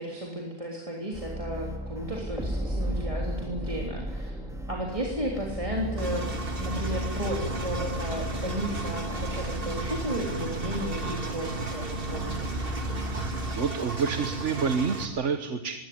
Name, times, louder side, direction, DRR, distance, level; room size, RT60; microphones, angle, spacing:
voice 1, 0.0-4.4 4.7-6.3 6.6-12.5, equal, 20° right, -2 dB, 3.4 m, -33 dB
sound 1, 1.1-13.6, equal, ahead, 3.1 m, -35 dB
Engine, 6.0-15.1, right 3 dB, 40° right, 2.3 m, -34 dB
voice 2, 13.5-15.7, right 5 dB, 55° right, 8 dB, 1.4 m, -28 dB
21.5 x 17.0 x 9.5 m, 1.1 s
omnidirectional pair, 1.5 m